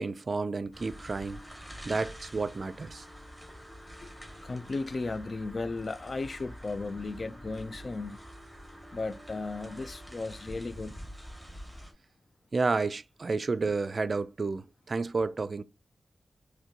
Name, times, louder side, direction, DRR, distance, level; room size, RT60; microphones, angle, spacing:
voice 1, 0.0-1.4 1.9-3.1 12.5-15.6, right 3 dB, 50° right, 0.4 m, -31 dB
sound 1, 0.7-11.9, equal, ahead, 1.9 m, -47 dB
voice 2, 4.4-8.2 8.9-11.0, left 3 dB, 50° left, 0.5 m, -35 dB
5.1 x 3.1 x 2.8 m
cardioid pair, 55°, 0 cm